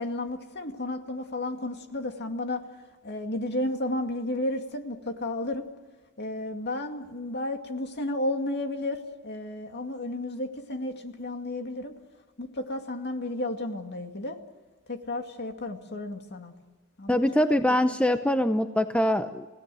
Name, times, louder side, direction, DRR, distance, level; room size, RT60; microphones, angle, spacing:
voice 1, 0.0-2.6 3.0-5.7 6.2-11.9 12.4-14.4 14.9-16.5 17.0-17.3 17.7-18.0, left 1 dB, 50° left, 5 dB, 2.2 m, -32 dB
voice 2, 17.1-19.5, left 1 dB, 5° left, 8 dB, 0.7 m, -23 dB
28.5 x 17.5 x 7.7 m, 1.3 s
head